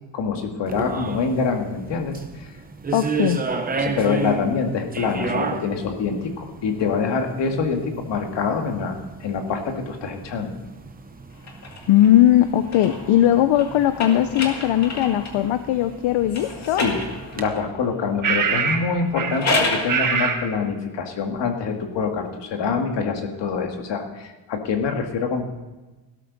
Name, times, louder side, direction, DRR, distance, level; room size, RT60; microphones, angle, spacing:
voice 1, 0.1-2.5 3.8-10.6 16.8-17.0 17.3-25.5, left 5 dB, 65° left, 4 dB, 2.0 m, -25 dB
sound 1, 0.7-17.5, right 4 dB, 20° right, 0.8 m, -34 dB
voice 2, 2.9-3.5 11.9-16.8, left 12 dB, 85° left, 10 dB, 0.7 m, -19 dB
sound 2, 11.4-15.5 16.3-17.7 19.1-19.9, left 2 dB, 35° left, 2.2 m, -29 dB
sound 3, 16.8-16.9 18.2-18.9 19.1-19.4 19.9-20.4, right 6 dB, 40° right, 1.5 m, -23 dB
17.0 x 12.5 x 4.0 m, 1.2 s
cardioid pair, 175°, 46 cm